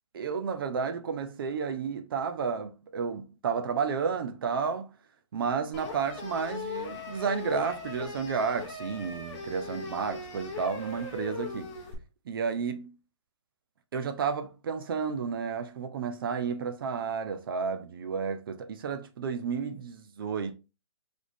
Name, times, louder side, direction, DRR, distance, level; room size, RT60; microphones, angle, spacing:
voice 1, 0.1-4.9 5.3-11.7 12.3-12.9 13.9-20.6, right 6 dB, 45° right, 0.6 m, -32 dB
sound 1, 5.7-11.9, left 4 dB, 20° left, 0.9 m, -39 dB
3.3 x 3.1 x 4.0 m
hypercardioid pair, 160°, 16 cm